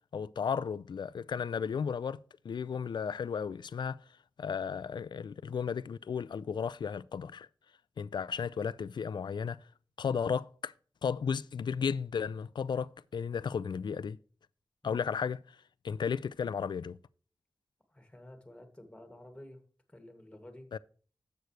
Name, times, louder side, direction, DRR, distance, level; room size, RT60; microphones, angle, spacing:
voice 1, 0.1-2.2 2.4-4.0 4.4-7.5 8.0-9.6 10.0-10.7 11.0-14.2 14.8-15.4 15.8-17.0 20.7-20.8, left 6 dB, 80° left, 0.4 m, -34 dB
voice 2, 17.9-19.6 19.9-20.7, left 1 dB, 15° left, 2.3 m, -51 dB
11.5 x 7.9 x 3.2 m
cardioid pair, 60°, 8 cm